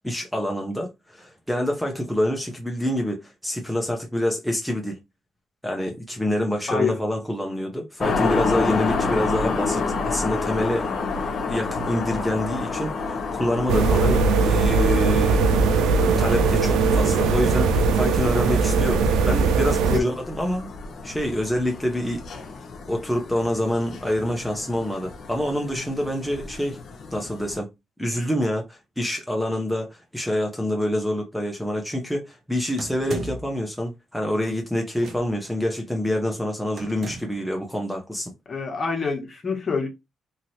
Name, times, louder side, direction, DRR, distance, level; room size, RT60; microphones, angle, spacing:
voice 1, 0.0-5.0 5.6-10.9 11.5-15.5 16.2-20.7 21.0-22.3 22.9-26.8 27.1-27.7 28.0-38.3, left 1 dB, ahead, 0.7 m, -26 dB
voice 2, 6.7-7.0 13.8-14.0 19.9-20.0 38.5-39.9, left 5 dB, 40° left, 1.1 m, -26 dB
sound 1, 8.0-27.6, left 4 dB, 55° left, 0.8 m, -30 dB
sound 2, 13.7-20.0, right 4 dB, 85° right, 0.4 m, -20 dB
sound 3, 32.8-33.6 35.0-35.5 36.8-37.5, right 3 dB, 55° right, 0.8 m, -36 dB
2.9 x 2.8 x 2.7 m
cardioid pair, 90°, 0 cm